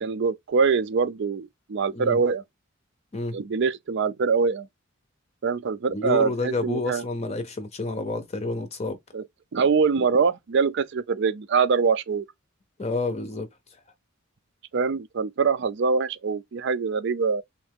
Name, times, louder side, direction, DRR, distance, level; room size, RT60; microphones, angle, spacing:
voice 1, 0.0-2.4 3.3-4.7 5.4-7.0 9.1-9.2 9.5-12.3 14.7-17.4, right 5 dB, 60° right, 0.4 m, -24 dB
voice 2, 5.9-9.0 12.8-13.8, left 2 dB, 30° left, 0.6 m, -29 dB
3.2 x 2.7 x 3.5 m
head